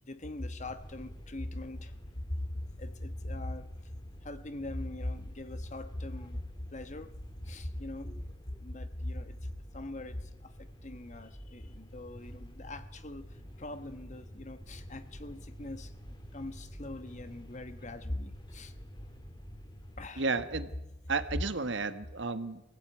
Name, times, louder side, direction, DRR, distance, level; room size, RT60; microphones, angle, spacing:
voice 1, 0.0-1.9 2.3-2.4 2.8-3.9 4.2-6.4 6.7-7.1 7.4-8.3 8.6-15.9 16.3-18.7 20.0-20.3, left 1 dB, 40° left, 11 dB, 1.3 m, -41 dB
sound 1, 0.6-20.1, equal, 25° left, 2.2 m, -48 dB
voice 2, 20.2-20.7 21.1-22.6, right 4 dB, 65° right, 10 dB, 1.5 m, -32 dB
23.0 x 17.0 x 9.0 m, 0.95 s
head